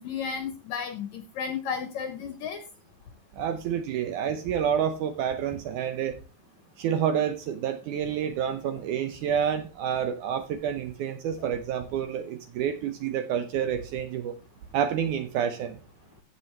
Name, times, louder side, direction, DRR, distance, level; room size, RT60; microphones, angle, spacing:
voice 1, 0.0-2.6, left 6 dB, 70° left, 8 dB, 1.8 m, -33 dB
voice 2, 3.4-6.2 6.8-14.3 14.7-15.8, right 8 dB, 75° right, 8 dB, 1.9 m, -28 dB
15.0 x 6.1 x 3.2 m, 0.33 s
omnidirectional pair, 4.2 m